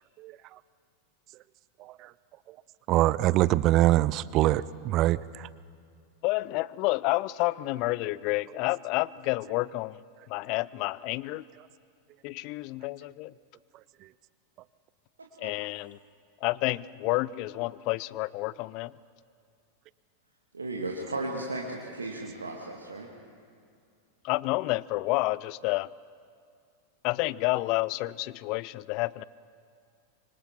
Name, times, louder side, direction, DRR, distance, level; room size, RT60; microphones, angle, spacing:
voice 1, 1.8-2.1 2.9-5.5, right 16 dB, 40° right, 20 dB, 0.5 m, -24 dB
voice 2, 6.2-10.0 10.3-11.4 12.2-13.3 15.4-16.0 16.4-18.9 24.2-25.9 27.0-29.2, left 20 dB, 45° left, 21 dB, 0.4 m, -29 dB
voice 3, 20.5-23.1, right 2 dB, 75° right, -1 dB, 1.9 m, -35 dB
25.5 x 25.0 x 4.4 m, 2.3 s
figure-of-eight pair, 90°, 0 cm